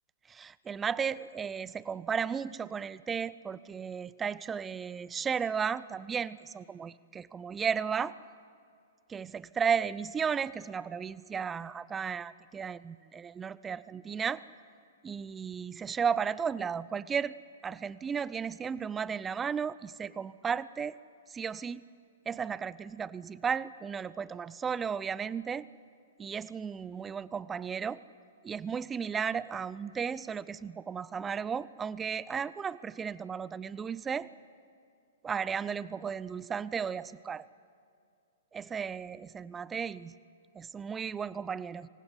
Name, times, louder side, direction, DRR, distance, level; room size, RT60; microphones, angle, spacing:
voice 1, 0.3-8.1 9.1-14.4 15.0-17.3 17.6-21.0 21.3-21.9 22.3-25.6 26.2-28.0 28.4-34.3 35.2-37.5 38.5-40.1 40.5-41.9, right 6 dB, 15° right, 19 dB, 0.6 m, -34 dB
26.0 x 19.5 x 9.6 m, 2.4 s
figure-of-eight pair, 110°, 0 cm